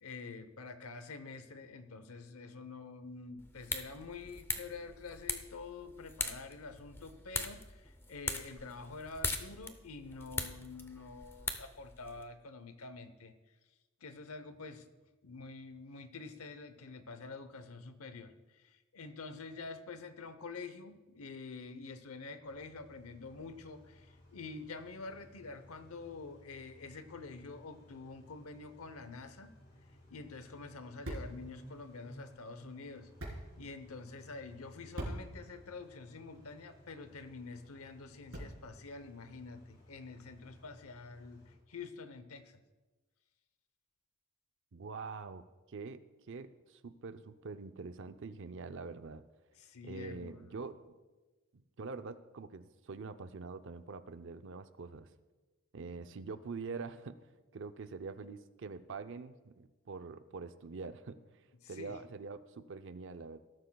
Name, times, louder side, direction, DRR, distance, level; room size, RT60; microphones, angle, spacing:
voice 1, 0.0-13.3 14.0-14.8 15.2-29.5 30.1-42.6 49.6-50.6 61.6-62.0, left 4 dB, 80° left, 11 dB, 0.8 m, -47 dB
sound 1, 3.4-12.2, left 3 dB, 10° left, 0.6 m, -41 dB
Car / Idling / Accelerating revving vroom, 22.4-41.5, left 1 dB, 50° left, 2.7 m, -59 dB
sound 2, 29.8-38.8, right 1 dB, 80° right, 3.7 m, -48 dB
voice 2, 44.7-49.2 49.8-50.9 51.5-55.1 55.7-57.2 57.5-61.2 61.7-63.4, right 4 dB, 60° right, 11 dB, 0.6 m, -45 dB
19.0 x 11.5 x 2.3 m, 1.2 s
head